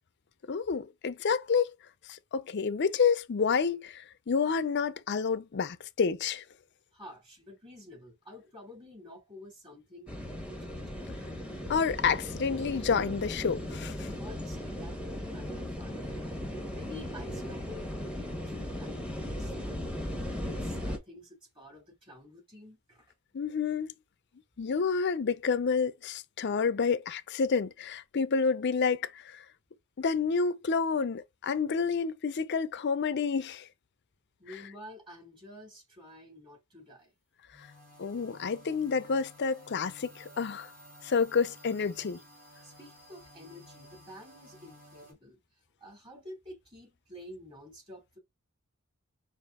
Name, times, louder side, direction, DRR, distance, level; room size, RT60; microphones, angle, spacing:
voice 1, 0.5-1.7 2.1-6.4 11.7-14.1 23.3-23.9 24.6-29.4 30.0-33.7 37.6-37.7 38.0-40.7 41.0-42.2, left 5 dB, 55° left, 0.5 m, -29 dB
voice 2, 6.9-10.8 14.2-16.4 16.7-19.8 20.4-23.1 34.4-37.1 42.6-45.4 45.8-48.2, left 1 dB, 25° right, 2.8 m, -50 dB
sound 1, 10.1-21.0, left 1 dB, 5° right, 1.0 m, -37 dB
sound 2, 37.5-45.1, equal, 45° right, 3.3 m, -54 dB
5.1 x 2.6 x 3.5 m
head